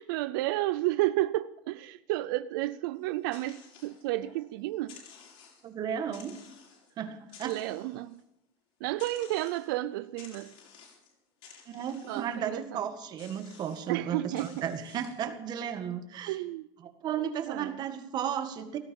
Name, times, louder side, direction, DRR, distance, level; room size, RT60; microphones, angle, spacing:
voice 1, 0.0-5.0 7.4-8.2 8.8-10.5 12.1-12.8 13.9-14.7 16.2-16.7 17.5-17.8, right 16 dB, 85° right, 0.5 m, -32 dB
sound 1, 3.0-4.4 4.8-5.7 6.1-6.9 7.2-8.2 9.0-9.7 10.2-11.1 11.4-12.4 13.2-13.9 14.3-15.3, left 7 dB, 60° left, 6.3 m, -53 dB
voice 2, 5.6-6.3 7.0-7.6 11.7-16.4 17.0-18.8, right 8 dB, 40° right, 1.8 m, -34 dB
17.5 x 13.5 x 5.4 m
cardioid pair, 145°, 11 cm